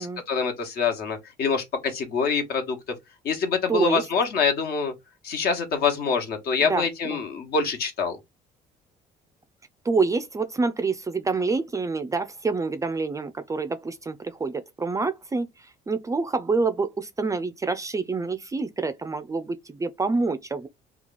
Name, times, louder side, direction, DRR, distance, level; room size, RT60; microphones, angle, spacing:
voice 1, 0.0-2.8 3.2-4.9 5.2-8.2, left 5 dB, 65° left, 1.2 m, -25 dB
voice 2, 3.7-4.0 6.7-7.2 9.8-20.7, right 4 dB, 20° right, 0.4 m, -27 dB
3.0 x 2.4 x 3.8 m
cardioid pair, 110°, 17 cm